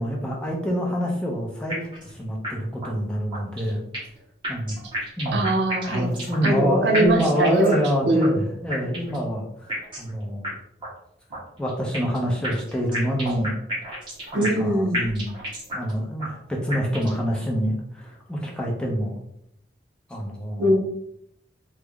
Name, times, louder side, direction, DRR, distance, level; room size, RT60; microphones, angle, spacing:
voice 1, 0.0-3.9 4.5-4.8 5.2-5.5 5.9-9.7 10.0-10.5 11.6-13.6 14.3-15.4 15.7-19.2 20.1-20.8, equal, 5° left, -2 dB, 0.5 m, -26 dB
sound 1, 1.7-2.1 2.4-2.5 2.8-2.9 3.3-4.2 4.4-6.7 6.9-7.9 8.2-8.3 8.7-9.2 9.7-10.1 10.4-10.5 10.8-10.9 11.3-12.2 12.4-14.7 14.9-15.9 16.2-16.3 16.7-17.2, right 1 dB, 25° right, 1.2 m, -31 dB
voice 2, 5.3-6.1 6.4-7.7 8.1-8.4 14.3-15.0 20.6-20.8, right 1 dB, 70° right, 2 dB, 0.6 m, -21 dB
3.5 x 2.0 x 3.4 m, 0.75 s
head